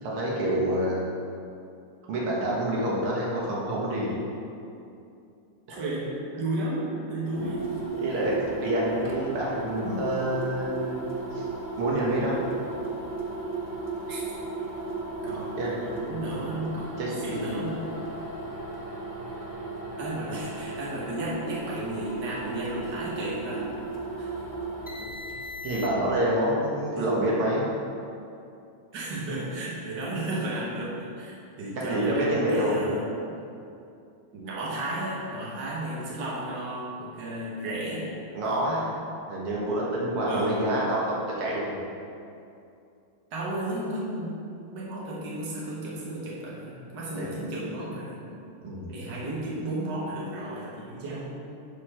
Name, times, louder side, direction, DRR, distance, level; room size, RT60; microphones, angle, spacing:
voice 1, 0.0-1.0 2.1-4.2 5.7-5.8 7.4-7.6 8.0-11.4 11.8-12.4 15.6-15.8 17.0-17.4 25.6-27.7 31.8-32.8 38.3-38.9 39.3-41.8 47.1-47.3 48.6-48.9, right 1 dB, 85° right, -5 dB, 2.3 m, -27 dB
voice 2, 5.7-7.7 14.1-14.2 15.2-18.0 20.0-23.7 24.2-24.4 27.0-27.2 28.9-33.4 34.3-38.1 38.4-38.7 40.2-40.7 43.3-44.4 44.7-48.3 48.9-51.4, right 1 dB, 55° right, -6 dB, 2.1 m, -33 dB
sound 1, 7.2-26.2, right 2 dB, 20° left, 0.5 m, -35 dB
11.0 x 4.7 x 4.4 m, 2.6 s
omnidirectional pair, 2.4 m